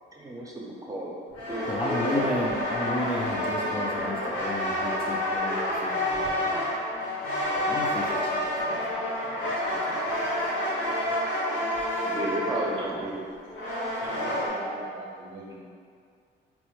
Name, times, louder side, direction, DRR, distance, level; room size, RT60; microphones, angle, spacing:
voice 1, 0.1-1.1 1.5-2.4 12.0-13.2 13.8-13.9, right 1 dB, 15° right, -3 dB, 0.6 m, -33 dB
sound 1, 1.3-14.5, left 1 dB, 80° left, 0.9 m, -29 dB
voice 2, 1.7-6.6 7.5-8.8 9.4-9.5, left 1 dB, 25° left, -4 dB, 0.4 m, -33 dB
voice 3, 12.5-13.1 14.0-15.6, right 2 dB, 85° right, -3 dB, 0.6 m, -40 dB
3.3 x 2.1 x 3.0 m, 2.2 s
cardioid pair, 90°, 20 cm